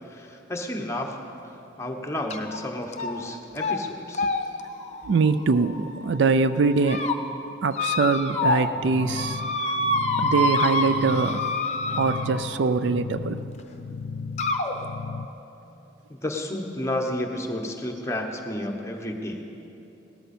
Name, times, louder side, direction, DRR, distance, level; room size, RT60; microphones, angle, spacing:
voice 1, 0.1-1.2 1.8-4.2 16.1-19.7, left 1 dB, 15° left, 1.0 m, -31 dB
sound 1, 2.3-2.6 2.9-3.3 3.6-3.8 4.1-6.1 6.6-7.2 7.7-8.7 9.0-12.6 13.6-13.7 14.4-14.7, left 2 dB, 35° left, 0.7 m, -27 dB
voice 2, 5.0-7.1 7.6-9.4 10.2-11.4 12.0-13.4, right 4 dB, 65° right, 0.4 m, -23 dB
sound 2, 8.7-15.3, left 5 dB, 70° left, 0.4 m, -36 dB
17.5 x 13.5 x 4.3 m
head